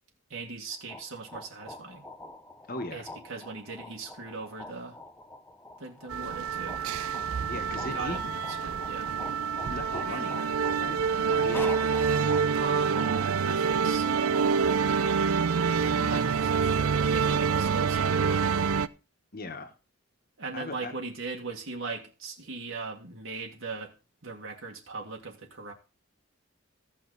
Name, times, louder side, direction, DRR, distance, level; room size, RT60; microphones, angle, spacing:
voice 1, 0.3-2.0 2.9-5.0 5.8-6.8 7.8-9.1 12.5-14.6 15.7-18.6 20.4-23.9 24.2-25.7, right 4 dB, 70° right, 2.0 m, -39 dB
sound 1, 0.7-14.8, left 1 dB, 10° left, 0.7 m, -46 dB
voice 2, 2.7-3.1 7.5-8.3 9.6-10.4 10.8-11.0 11.3-12.0 16.1-16.2 19.3-19.7 20.5-20.9, left 2 dB, 45° left, 1.5 m, -38 dB
sound 2, 6.1-18.9, right 6 dB, 90° right, 0.5 m, -27 dB
Wind instrument woodwind instrument, 7.7-13.3, left 10 dB, 80° left, 0.7 m, -45 dB
15.5 x 6.0 x 4.1 m
head